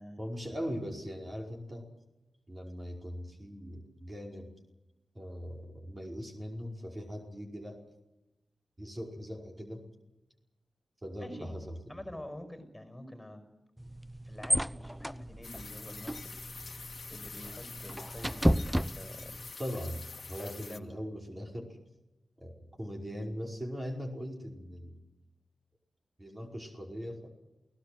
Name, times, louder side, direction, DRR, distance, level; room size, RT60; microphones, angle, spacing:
voice 1, 0.2-1.9 2.5-4.5 5.1-7.8 8.8-9.9 11.0-12.0 19.6-21.8 22.4-25.0 26.2-27.3, equal, 30° right, 1 dB, 5.1 m, -40 dB
voice 2, 11.9-13.4 14.2-19.3 20.4-20.9, left 1 dB, 10° left, 8 dB, 5.4 m, -47 dB
sound 1, 13.8-19.5, equal, 5° right, 0.8 m, -33 dB
sound 2, 15.4-20.8, left 4 dB, 55° left, 1.9 m, -46 dB
28.5 x 18.5 x 7.8 m, 0.97 s
cardioid pair, 55°, 0 cm